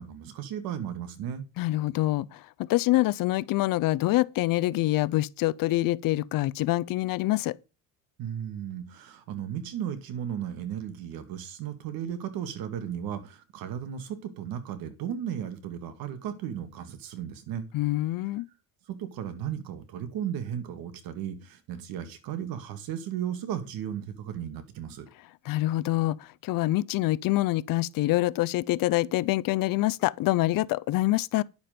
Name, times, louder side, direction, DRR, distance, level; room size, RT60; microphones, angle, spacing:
voice 1, 0.0-1.4 8.2-17.7 18.9-25.1, right 9 dB, 75° right, 2.2 m, -35 dB
voice 2, 1.6-7.6 17.7-18.5 25.4-31.4, left 17 dB, 70° left, 0.7 m, -26 dB
10.5 x 7.2 x 5.2 m
cardioid pair, 140°, 36 cm